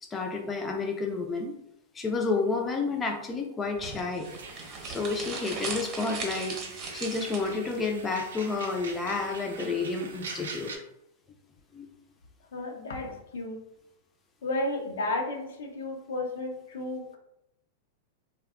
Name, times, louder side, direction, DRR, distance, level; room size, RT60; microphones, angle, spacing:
voice 1, 0.0-1.6 1.9-4.3 4.5-6.6 6.9-10.7 11.7-11.9, left 4 dB, 20° left, 3 dB, 0.4 m, -30 dB
sound 1, 3.8-7.8, right 4 dB, 35° right, 0.8 m, -38 dB
sound 2, 4.2-10.8, right 4 dB, 90° right, 0.5 m, -43 dB
voice 2, 12.5-13.6 14.4-17.2, left 2 dB, 80° left, 2 dB, 0.5 m, -33 dB
2.6 x 2.2 x 2.4 m, 0.79 s
hypercardioid pair, 120°, 0 cm